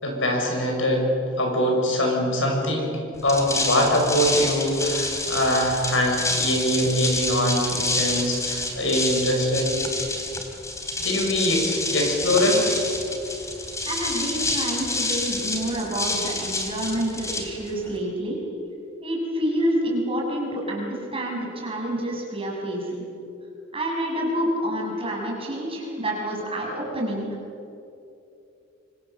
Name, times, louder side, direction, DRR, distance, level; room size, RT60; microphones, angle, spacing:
voice 1, 0.0-1.1 1.4-9.7 11.0-12.7, equal, 75° left, 1 dB, 6.4 m, -23 dB
sound 1, 3.2-18.0, left 2 dB, 15° left, 2.9 m, -28 dB
voice 2, 13.8-18.4 19.0-23.0 23.7-27.4, equal, 30° right, -2 dB, 6.6 m, -28 dB
26.0 x 25.5 x 7.2 m, 2.7 s
head